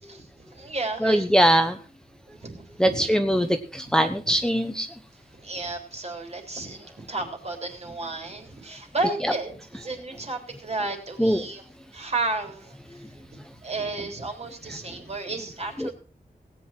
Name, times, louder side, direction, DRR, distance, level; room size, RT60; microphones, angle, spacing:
voice 1, 0.0-1.3 2.3-3.1 4.3-4.4 5.3-11.6 11.9-13.3 13.6-15.9, right 3 dB, 40° right, 3 dB, 3.8 m, -33 dB
voice 2, 1.0-1.8 2.8-4.9 11.2-11.4 15.8-15.9, equal, 5° left, 7 dB, 0.9 m, -21 dB
18.0 x 9.3 x 4.4 m, 0.38 s
wide cardioid pair, 120°, 16 cm